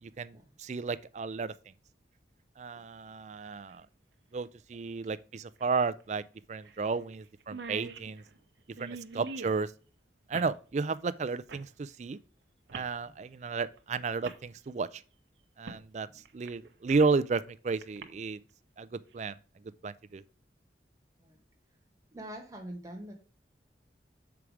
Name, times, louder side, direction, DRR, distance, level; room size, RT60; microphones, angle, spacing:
voice 1, 0.0-1.5 2.6-3.9 4.3-6.2 6.5-8.2 8.8-9.7 10.3-12.2 12.7-15.0 15.6-16.1 16.3-18.4 18.8-19.4 19.8-20.2, right 4 dB, 40° right, 0.4 m, -33 dB
sound 1, 3.7-3.8 5.6-5.7 6.0-6.1 6.6-6.9 7.1-7.2 7.4-9.6 10.3-10.6 11.5-11.7 12.7-13.0 13.8-13.9 14.2-14.4 15.7-15.8 16.3-17.2 17.8-18.0, right 4 dB, 75° right, 0.7 m, -44 dB
voice 2, 22.1-23.1, right 1 dB, 20° right, 1.5 m, -44 dB
7.1 x 4.7 x 4.9 m
head